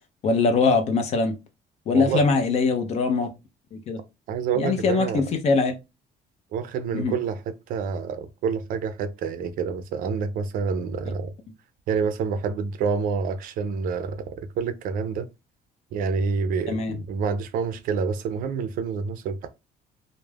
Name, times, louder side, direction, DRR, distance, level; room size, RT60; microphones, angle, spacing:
voice 1, 0.2-1.4 1.9-3.3 3.7-4.0 4.6-5.7 6.9-7.1 16.7-17.0, left 4 dB, 40° left, 0.5 m, -22 dB
voice 2, 1.9-2.2 4.3-5.2 6.5-7.4 7.7-11.3 11.9-15.3 15.9-19.5, right 5 dB, 60° right, 0.4 m, -27 dB
2.3 x 2.0 x 3.2 m
cardioid pair, 170°, 16 cm